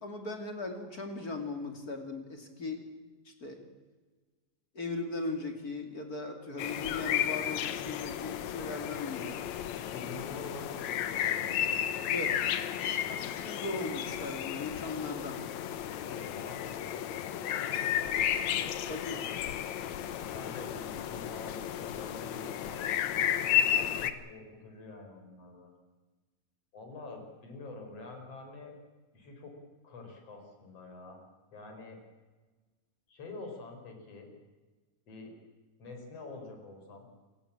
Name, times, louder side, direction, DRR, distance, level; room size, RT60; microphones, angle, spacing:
voice 1, 0.0-2.9 3.2-3.6 4.7-9.4 12.1-12.4 12.9-15.4 18.9-19.2, left 3 dB, 30° left, 5 dB, 2.6 m, -38 dB
sound 1, 6.6-24.1, left 10 dB, 65° left, 2.0 m, -33 dB
voice 2, 9.9-11.8 12.4-12.9 16.0-18.8 20.3-22.9 23.7-25.7 26.7-28.7 29.1-29.5 29.8-31.2 31.5-32.0 33.1-34.3 35.1-35.3 35.8-37.1, left 3 dB, 45° left, 4 dB, 5.4 m, -47 dB
27.0 x 16.0 x 8.8 m, 1.3 s
omnidirectional pair, 4.0 m